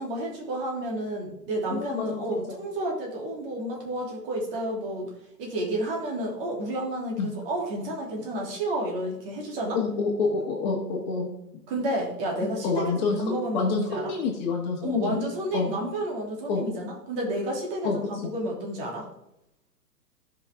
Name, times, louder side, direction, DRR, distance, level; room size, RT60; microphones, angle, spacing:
voice 1, 0.0-5.1 5.4-9.8 11.7-12.8 13.2-14.1 14.8-19.1, right 1 dB, 35° right, -1 dB, 3.0 m, -31 dB
voice 2, 1.7-2.3 7.2-7.3 9.7-11.3 12.4-15.2 15.5-15.7 16.5-16.6 17.8-18.0, left 4 dB, 30° left, 0 dB, 1.7 m, -27 dB
15.5 x 5.6 x 3.6 m, 0.82 s
figure-of-eight pair, 125°, 48 cm